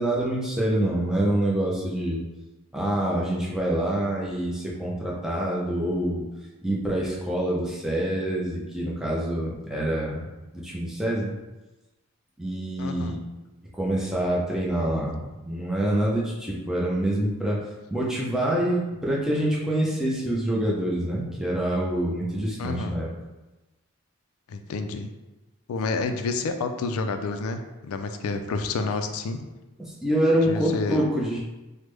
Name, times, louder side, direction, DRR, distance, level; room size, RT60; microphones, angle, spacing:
voice 1, 0.0-2.2 2.7-6.3 6.6-10.3 10.5-11.3 12.4-13.2 13.7-17.6 17.9-23.1 29.8-31.4, right 1 dB, ahead, -5 dB, 0.4 m, -26 dB
voice 2, 12.8-13.1 22.6-23.0 24.5-25.1 25.7-29.5 30.5-31.0, left 3 dB, 80° left, 8 dB, 0.3 m, -29 dB
3.3 x 2.1 x 3.1 m, 1.1 s
head